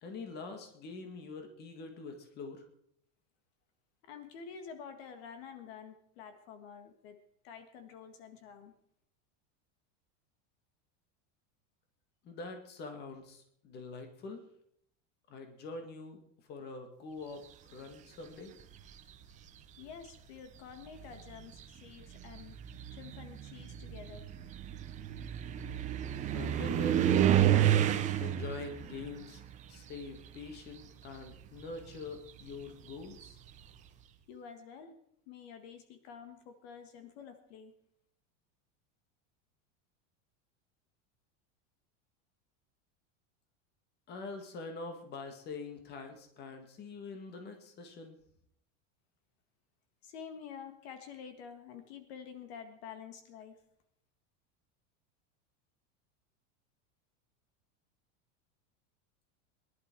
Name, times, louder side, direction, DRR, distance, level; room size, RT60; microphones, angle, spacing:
voice 1, 0.0-2.6 12.2-14.4 15.3-16.2 16.5-17.4 17.7-18.5 26.3-27.2 27.8-29.4 29.7-33.4 44.1-48.2, left 3 dB, 25° left, 5 dB, 2.0 m, -44 dB
voice 2, 4.0-8.7 19.8-22.6 22.9-24.3 34.3-35.0 35.3-37.7 50.0-53.6, left 7 dB, 60° left, 8 dB, 1.9 m, -49 dB
sound 1, 18.6-19.1 20.1-20.2 20.8-30.7 31.0-33.6, right 11 dB, 20° right, 0.8 m, -31 dB
21.5 x 11.5 x 4.6 m, 0.69 s
supercardioid pair, 175°, 36 cm